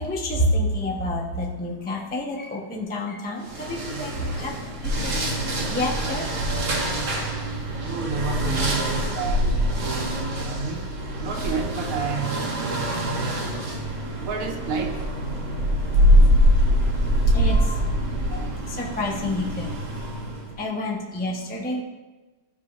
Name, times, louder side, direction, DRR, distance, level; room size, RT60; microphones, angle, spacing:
voice 1, 0.0-4.1 4.4-4.5 4.8-5.1 5.7-6.3 9.8-9.9 12.7-13.0 17.3-17.8 18.3-18.4 18.8-19.7 20.6-21.8, left 1 dB, 10° left, -2 dB, 0.4 m, -28 dB
sound 1, 3.4-20.5, equal, 60° right, 2.3 m, -24 dB
voice 2, 7.8-10.2 10.4-10.9 11.2-13.7 14.2-15.0, right 4 dB, 85° right, 2 dB, 1.9 m, -31 dB
14.0 x 5.8 x 2.5 m, 1.2 s
omnidirectional pair, 2.3 m